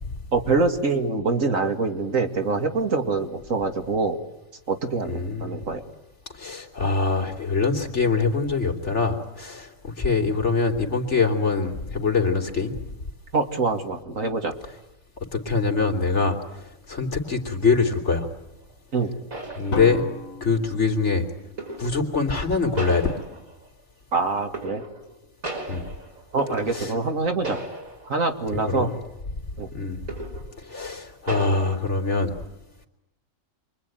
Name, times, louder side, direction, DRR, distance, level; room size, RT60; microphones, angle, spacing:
voice 1, 0.3-4.2 4.7-5.8 13.3-14.5 18.9-19.2 24.1-24.8 26.3-27.6 28.0-28.9 29.6-29.7, right 3 dB, 70° right, 5 dB, 2.6 m, -25 dB
voice 2, 5.1-5.6 6.3-12.8 15.3-16.4 16.9-18.3 19.6-20.0 20.4-21.2 21.8-23.1 25.7-25.8 26.7-26.9 28.7-28.9 29.7-30.0 30.6-32.3, left 4 dB, 55° left, 2 dB, 3.3 m, -24 dB
sound 1, 18.7-18.8 19.3-20.2 21.6-22.1 22.8-23.7 24.5-25.1 25.4-27.2 27.4-28.2 28.6-28.8 30.1-30.6 31.3-31.7, right 2 dB, 90° right, 5.7 m, -35 dB
Drum, 19.7-21.8, left 3 dB, 80° left, 3.3 m, -35 dB
28.0 x 23.0 x 9.2 m, 0.89 s
omnidirectional pair, 1.4 m